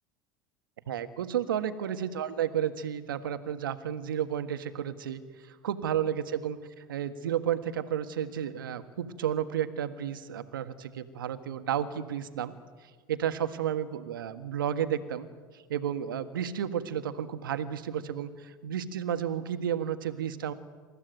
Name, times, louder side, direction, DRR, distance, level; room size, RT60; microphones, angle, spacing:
voice 1, 0.9-12.5 13.1-15.3 15.5-20.5, right 9 dB, 85° right, 10 dB, 1.6 m, -32 dB
27.5 x 15.0 x 9.3 m, 1.5 s
hypercardioid pair, 80°, 11 cm